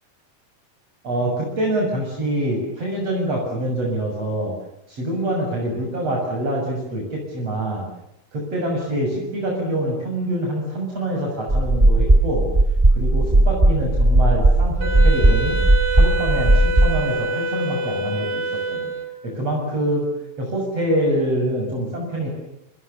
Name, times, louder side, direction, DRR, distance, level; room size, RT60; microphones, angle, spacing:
voice 1, 1.0-4.5 4.9-7.9 8.3-12.5 12.9-15.6 15.9-18.9 19.2-20.1 20.4-22.3, right 1 dB, 45° right, -1 dB, 8.1 m, -25 dB
sound 1, 11.5-17.0, right 1 dB, 20° right, 0.9 m, -16 dB
Wind instrument woodwind instrument, 14.8-19.4, right 2 dB, 85° right, 4.7 m, -26 dB
30.0 x 28.0 x 7.0 m, 0.85 s
omnidirectional pair, 4.0 m